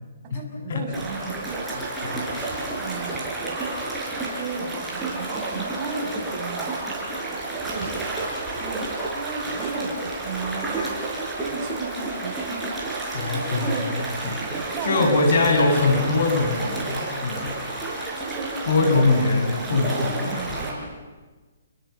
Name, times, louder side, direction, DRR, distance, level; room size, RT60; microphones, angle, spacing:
voice 1, 0.3-1.7 2.1-2.3 2.8-3.5 4.0-6.8 7.6-8.1 8.6-11.0 11.4-13.9 14.2-15.1 15.5-15.6 18.2-20.9, right 4 dB, 30° right, 1 dB, 6.1 m, -35 dB
sound 1, 0.9-20.7, right 2 dB, 10° right, 6.8 m, -30 dB
voice 2, 1.7-2.2 13.1-14.0 14.2-17.5 18.7-20.3, left 3 dB, 60° left, 3 dB, 7.4 m, -22 dB
29.5 x 24.5 x 7.1 m, 1.3 s
hypercardioid pair, 150°, 0 cm